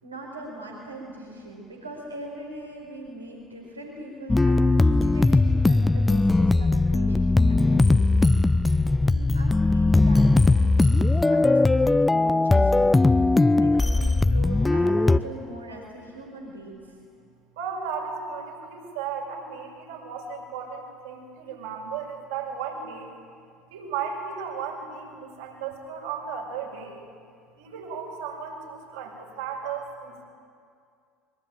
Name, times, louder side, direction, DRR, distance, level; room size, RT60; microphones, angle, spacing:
voice 1, 0.0-8.6 9.0-13.3 13.6-16.9, right 1 dB, 90° right, -1 dB, 4.5 m, -41 dB
sound 1, 4.3-15.2, left 2 dB, 15° left, 0.7 m, -19 dB
voice 2, 17.6-23.1 23.7-27.0 27.6-30.2, right 6 dB, 70° right, -2 dB, 6.6 m, -35 dB
24.5 x 23.0 x 9.0 m, 2.3 s
figure-of-eight pair, 65°, 0 cm